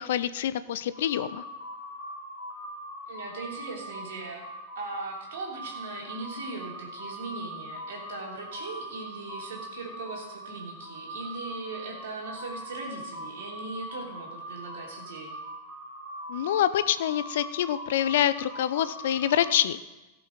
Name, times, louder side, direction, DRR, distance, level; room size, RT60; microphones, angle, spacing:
voice 1, 0.0-1.4 16.3-19.8, left 11 dB, 55° left, 15 dB, 0.5 m, -26 dB
sound 1, 0.9-19.5, equal, 40° right, 4.0 m, -41 dB
voice 2, 3.1-4.4 4.7-15.4, right 3 dB, 60° right, -1 dB, 3.1 m, -39 dB
16.5 x 6.0 x 5.0 m, 1.1 s
figure-of-eight pair, 90°, 0 cm